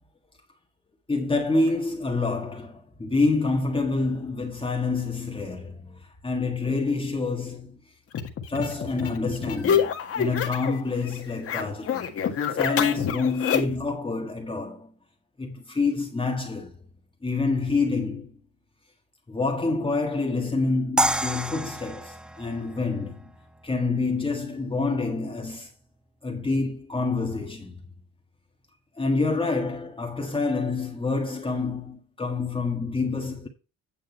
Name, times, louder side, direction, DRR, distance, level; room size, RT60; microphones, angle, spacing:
voice 1, 1.1-7.8 8.5-12.1 12.5-14.9 15.4-16.7 17.2-18.4 19.3-23.3 23.6-25.7 26.2-27.8 29.0-33.5, left 3 dB, 15° left, 1.6 m, -27 dB
sound 1, 8.1-10.8 11.1-13.9, left 7 dB, 45° left, 1.8 m, -27 dB
sound 2, 21.0-24.0, right 1 dB, 5° right, 0.4 m, -29 dB
9.7 x 6.4 x 4.5 m
cardioid pair, 105°, 31 cm